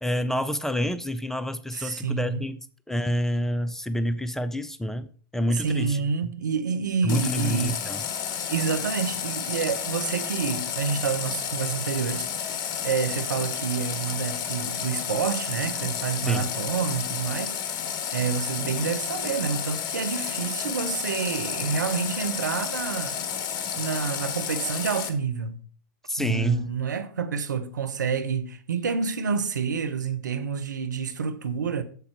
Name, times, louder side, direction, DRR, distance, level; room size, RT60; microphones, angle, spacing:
voice 1, 0.0-2.6 2.9-6.3 7.0-8.0 16.3-16.5 26.1-26.7, equal, 5° left, 0.6 m, -28 dB
voice 2, 1.7-2.4 5.5-7.8 8.5-12.5 12.8-17.6 18.1-23.2 23.8-25.6 26.2-31.8, right 6 dB, 75° right, 1.0 m, -28 dB
Water tap faucet, 7.1-25.1, left 8 dB, 40° left, 1.3 m, -31 dB
8.2 x 7.0 x 4.6 m
figure-of-eight pair, 95°, 10 cm